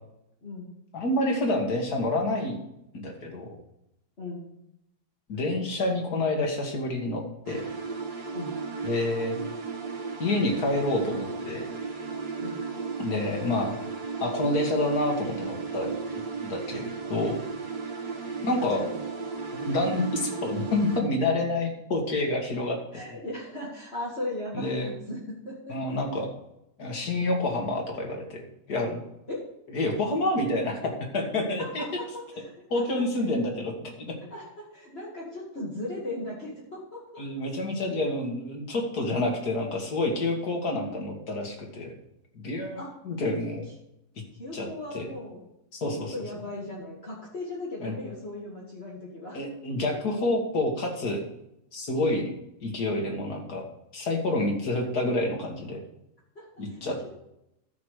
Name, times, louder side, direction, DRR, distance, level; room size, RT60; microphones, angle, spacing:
voice 1, 0.9-2.7 2.9-3.5 5.3-7.6 8.8-9.4 10.2-11.7 13.0-13.8 14.2-17.4 18.4-18.8 19.6-22.8 23.1-23.2 24.5-24.9 25.7-26.3 26.8-28.4 28.7-29.0 29.7-30.8 31.1-31.8 32.7-34.2 37.2-42.0 42.3-43.7 44.5-44.7 44.9-45.1 45.7-46.1 47.8-47.9 49.3-51.2 51.7-52.3 52.6-53.7 53.9-55.8 56.6-57.1, left 2 dB, 70° left, 1 dB, 2.3 m, -28 dB
sound 1, 7.5-21.0, right 5 dB, 75° right, 2.0 m, -35 dB
voice 2, 18.6-19.0 22.9-26.0 29.3-29.5 31.6-32.9 33.4-33.5 34.3-37.2 42.8-42.9 44.3-45.4 45.8-49.4 56.4-56.9, left 1 dB, 40° left, -5 dB, 2.2 m, -37 dB
12.0 x 4.8 x 6.5 m, 0.83 s
omnidirectional pair, 1.7 m